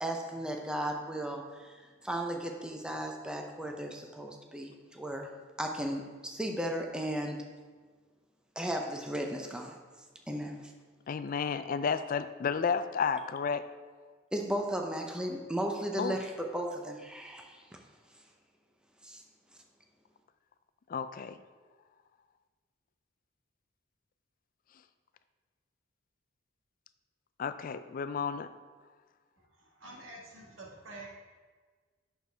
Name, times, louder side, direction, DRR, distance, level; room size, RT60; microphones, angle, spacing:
voice 1, 0.0-5.3 5.6-7.4 8.6-9.8 10.3-10.7 14.3-17.6 19.0-19.2, right 1 dB, 5° right, 2 dB, 0.7 m, -35 dB
voice 2, 11.1-13.6 16.0-16.2 20.9-21.4 27.4-28.5, left 6 dB, 45° left, 12 dB, 0.4 m, -32 dB
voice 3, 29.5-31.1, right 2 dB, 85° right, -2 dB, 1.8 m, -48 dB
8.7 x 6.6 x 3.4 m, 1.4 s
head